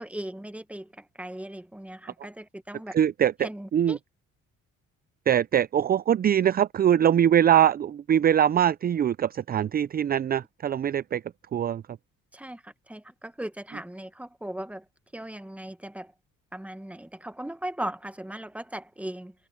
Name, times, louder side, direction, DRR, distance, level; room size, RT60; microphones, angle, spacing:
voice 1, 0.0-2.9 3.4-4.0 12.3-14.8 15.1-16.1 16.5-19.3, right 1 dB, 5° right, 1.3 m, -38 dB
voice 2, 2.9-4.0 5.3-11.2 11.5-11.8, right 10 dB, 30° right, 0.4 m, -22 dB
cardioid pair, 90°, 30 cm